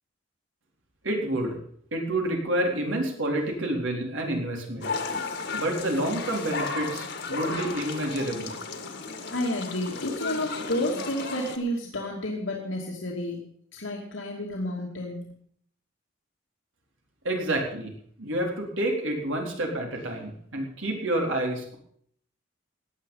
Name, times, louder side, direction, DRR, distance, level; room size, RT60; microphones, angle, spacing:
voice 1, 1.0-1.6 1.9-4.9 5.5-8.5 17.2-17.9 18.2-21.8, right 1 dB, 85° right, 1 dB, 4.0 m, -28 dB
sound 1, 4.8-11.6, left 4 dB, 60° left, 1.9 m, -34 dB
voice 2, 9.0-15.3, left 1 dB, 90° left, -2 dB, 2.6 m, -31 dB
16.5 x 10.0 x 5.6 m, 0.64 s
head